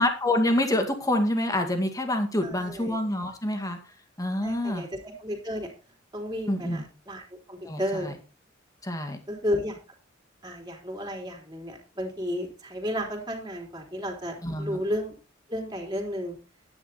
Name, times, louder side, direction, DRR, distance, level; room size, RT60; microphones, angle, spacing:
voice 1, 0.0-3.8 4.2-4.9 6.5-6.8 7.6-8.1 8.8-9.2 14.4-14.8, left 1 dB, 15° left, 5 dB, 2.1 m, -27 dB
voice 2, 2.4-3.0 4.4-5.7 6.1-7.2 7.5-8.1 9.3-9.8 10.4-15.1 15.5-16.4, equal, 20° right, 1 dB, 3.5 m, -33 dB
10.5 x 9.8 x 4.2 m, 0.34 s
head